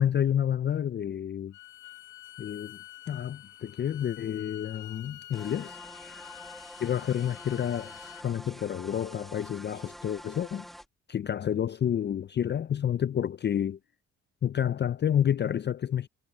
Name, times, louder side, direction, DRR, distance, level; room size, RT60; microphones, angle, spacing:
voice 1, 0.0-1.5 2.4-2.8 3.1-5.8 6.8-10.6 11.1-13.8 14.4-16.1, left 9 dB, 35° left, 0.5 m, -29 dB
Bowed string instrument, 1.5-8.3, left 14 dB, 85° left, 1.8 m, -48 dB
sound 1, 5.3-10.9, equal, ahead, 1.7 m, -47 dB
cardioid pair, 90°, 30 cm